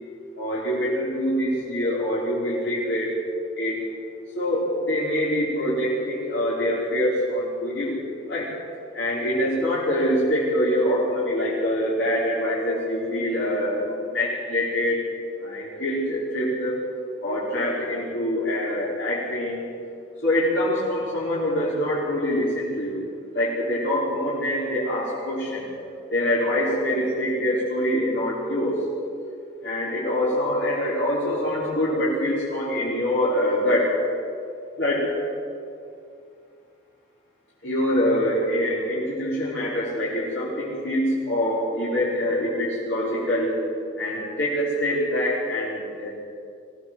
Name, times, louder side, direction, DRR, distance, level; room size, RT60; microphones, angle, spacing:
voice 1, 0.4-3.2 3.6-3.8 4.4-7.9 8.3-8.5 8.9-15.0 15.4-16.7 17.2-19.7 20.2-23.0 23.3-25.7 26.1-28.8 29.6-33.9 34.8-35.1 37.6-43.5 44.0-46.1, equal, 60° left, -8 dB, 5.2 m, -24 dB
23.0 x 18.0 x 8.0 m, 2.4 s
head